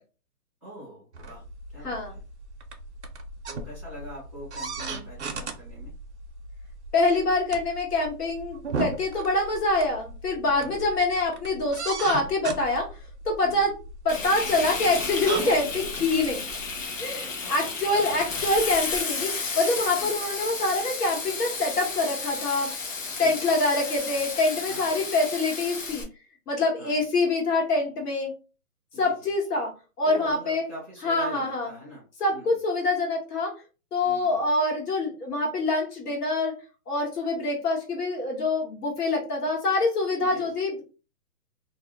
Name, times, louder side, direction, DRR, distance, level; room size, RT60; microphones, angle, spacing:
voice 1, 0.6-1.4 1.7-2.2 3.4-5.9 10.6-10.9 13.4-13.7 17.4-18.2 20.0-20.2 23.1-23.5 24.6-24.9 26.8-27.0 28.9-29.3 30.0-32.0 32.3-32.6 34.0-34.5 40.2-40.5, equal, 10° left, -11 dB, 0.5 m, -43 dB
squeaky office chair, 1.1-16.9, right 3 dB, 50° right, 0.5 m, -37 dB
voice 2, 1.8-2.2 6.9-12.9 13.2-13.8 14.0-16.5 17.0-22.7 23.2-26.0 26.5-28.3 29.0-29.7 30.0-30.7 31.0-31.7 32.2-33.5 33.9-36.6 36.9-40.9, left 2 dB, 80° left, 0 dB, 1.4 m, -25 dB
Frying (food), 14.1-26.0, left 4 dB, 55° left, 0.8 m, -32 dB
2.5 x 2.1 x 2.8 m, 0.34 s
hypercardioid pair, 170°, 46 cm